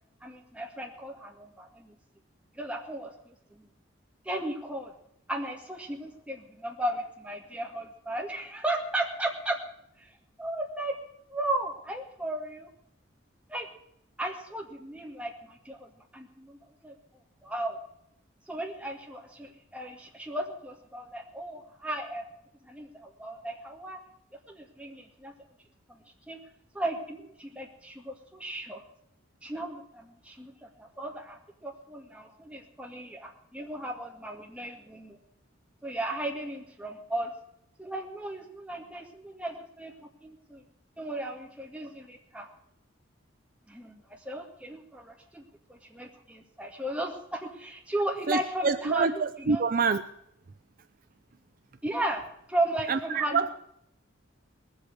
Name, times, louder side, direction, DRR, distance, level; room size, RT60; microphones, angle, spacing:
voice 1, 0.2-2.0 2.5-3.7 4.2-4.9 5.3-9.6 10.0-10.1 10.4-11.0 11.3-12.7 13.5-13.7 14.2-16.6 16.8-16.9 17.4-17.8 18.5-22.2 22.6-24.0 24.5-25.3 25.9-26.0 26.3-26.4 26.7-28.8 29.4-35.2 35.8-37.3 37.8-40.6 41.0-42.5 43.7-45.4 45.7-49.6 51.8-52.2 52.5-53.4, right 1 dB, 5° right, 0 dB, 2.1 m, -35 dB
voice 2, 48.3-50.0 52.9-53.5, right 5 dB, 45° right, 11 dB, 0.5 m, -26 dB
19.5 x 7.9 x 6.3 m, 0.74 s
head